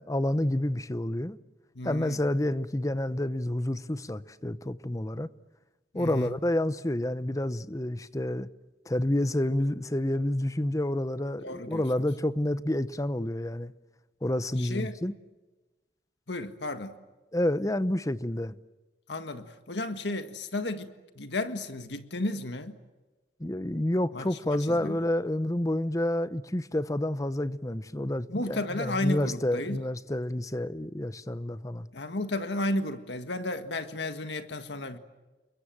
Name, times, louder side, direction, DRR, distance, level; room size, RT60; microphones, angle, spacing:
voice 1, 0.0-1.4 1.8-5.3 5.9-8.5 8.9-13.7 14.2-15.1 17.3-18.6 23.4-31.9, left 1 dB, 20° left, 0.8 m, -29 dB
voice 2, 1.7-2.2 5.9-6.3 11.4-11.8 14.6-15.0 16.3-17.0 19.1-20.9 21.1-22.8 24.1-25.0 28.3-29.8 31.9-35.0, left 2 dB, 75° left, 1.7 m, -33 dB
29.5 x 23.0 x 7.7 m
head